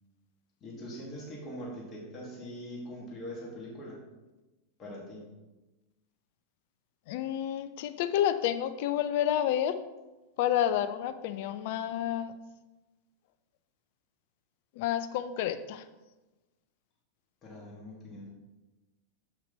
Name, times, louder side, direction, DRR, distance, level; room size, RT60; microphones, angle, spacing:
voice 1, 0.6-4.0 4.8-5.2 17.4-18.3, equal, 25° left, -4 dB, 2.5 m, -42 dB
voice 2, 7.1-9.7 10.4-12.3 14.8-15.8, left 11 dB, 50° left, 11 dB, 0.5 m, -29 dB
7.7 x 5.8 x 4.0 m, 1.1 s
figure-of-eight pair, 90°, 0 cm